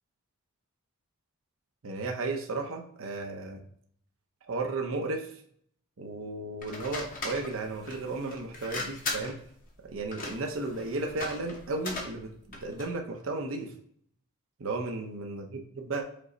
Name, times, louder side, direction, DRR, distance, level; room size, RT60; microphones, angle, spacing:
voice 1, 1.8-3.6 4.5-5.3 6.0-9.4 9.8-13.7 14.6-16.0, right 3 dB, 60° right, 2 dB, 0.6 m, -34 dB
sound 1, 6.6-13.0, left 3 dB, 35° left, 0.8 m, -39 dB
5.2 x 2.0 x 3.8 m, 0.64 s
head